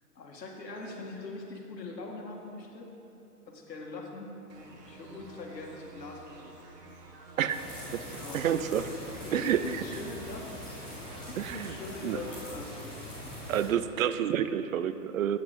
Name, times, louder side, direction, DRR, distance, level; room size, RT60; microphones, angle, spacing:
voice 1, 0.2-2.9 3.5-4.3 4.9-6.5 8.0-8.5 9.2-13.0, left 2 dB, 85° left, 0 dB, 1.9 m, -42 dB
sound 1, 4.5-12.5, right 2 dB, 75° right, 1.7 m, -50 dB
sound 2, 7.5-13.7, left 1 dB, 5° left, 0.4 m, -43 dB
voice 2, 8.3-8.9 9.3-9.6 11.4-11.7 12.0-12.2 13.5-15.4, right 10 dB, 55° right, 12 dB, 0.6 m, -28 dB
8.5 x 8.3 x 5.2 m, 2.9 s
hypercardioid pair, 145°, 49 cm